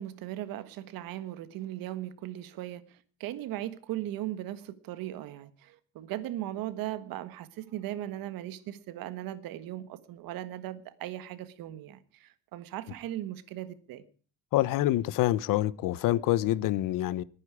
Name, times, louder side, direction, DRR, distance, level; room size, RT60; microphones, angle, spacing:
voice 1, 0.0-2.8 3.2-14.0, right 13 dB, 85° right, 1.5 m, -38 dB
voice 2, 14.5-17.2, left 15 dB, 75° left, 0.8 m, -26 dB
21.0 x 9.9 x 4.8 m
cardioid pair, 175°, 34 cm